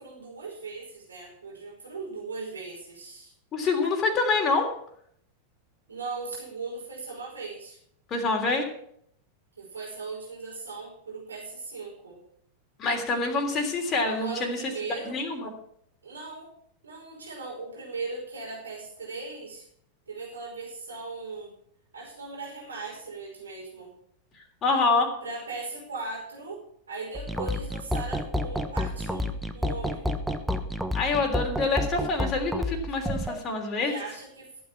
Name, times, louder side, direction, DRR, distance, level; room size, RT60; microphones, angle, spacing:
voice 1, 0.0-3.3 5.9-7.8 9.6-12.2 14.0-15.2 16.0-16.5 16.8-19.7 20.1-21.5 21.9-23.9 25.2-26.6 26.9-30.0 33.8-34.6, right 3 dB, 75° right, -1 dB, 5.4 m, -38 dB
voice 2, 3.5-4.7 8.1-8.6 12.8-14.6 15.1-15.5 24.6-25.1 30.9-33.9, left 3 dB, 30° left, 2 dB, 3.3 m, -26 dB
sound 1, 27.1-33.4, left 1 dB, ahead, 1.2 m, -30 dB
15.0 x 8.6 x 5.9 m, 0.66 s
figure-of-eight pair, 90°, 0 cm